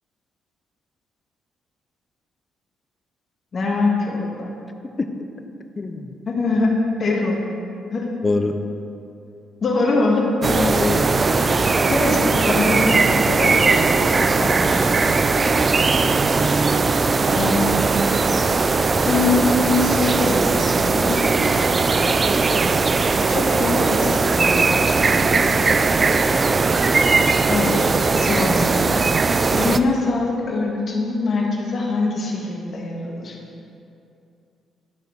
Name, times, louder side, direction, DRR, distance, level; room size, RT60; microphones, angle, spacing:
voice 1, 3.5-4.5 6.3-6.7 7.0-7.4 7.9-8.1 9.6-10.3 11.4-11.5 11.9-12.8 13.1-13.8 14.2-15.2 17.3-17.8 19.0-21.2 23.3-25.8 27.5-28.9 29.5-33.4, left 3 dB, 50° left, -1 dB, 1.6 m, -23 dB
voice 2, 5.8-6.1 8.2-8.6 10.5-11.1, left 3 dB, 30° left, 7 dB, 0.7 m, -23 dB
sound 1, 10.4-29.8, right 4 dB, 35° right, 0.3 m, -19 dB
12.0 x 5.0 x 4.6 m, 2.6 s
cardioid pair, 90°, 0 cm